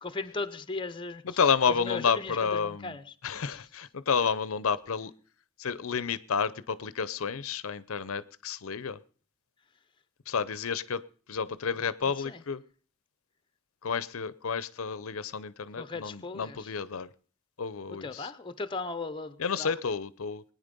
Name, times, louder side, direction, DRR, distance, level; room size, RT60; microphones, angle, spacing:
voice 1, 0.0-1.2 1.9-3.0 3.5-3.6 12.2-12.4 15.8-16.6 18.0-19.7, left 3 dB, 20° left, 11 dB, 0.7 m, -37 dB
voice 2, 1.2-3.0 3.2-5.1 5.6-9.0 10.3-11.0 11.3-12.6 13.8-17.1 17.6-18.3 19.4-20.4, left 6 dB, 70° left, 17 dB, 0.6 m, -30 dB
21.5 x 9.5 x 5.3 m, 0.42 s
head